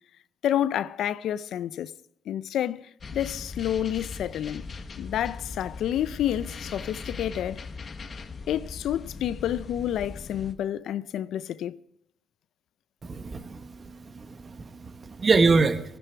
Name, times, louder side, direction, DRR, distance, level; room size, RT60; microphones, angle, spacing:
voice 1, 0.4-1.9 2.3-4.6 5.0-7.6 8.5-11.8, left 11 dB, 75° left, 0.5 m, -29 dB
sound 1, 3.0-10.5, left 4 dB, 40° left, 1.2 m, -39 dB
voice 2, 13.0-15.8, right 4 dB, 35° right, 1.3 m, -25 dB
15.0 x 14.0 x 4.6 m
cardioid pair, 90°, 0 cm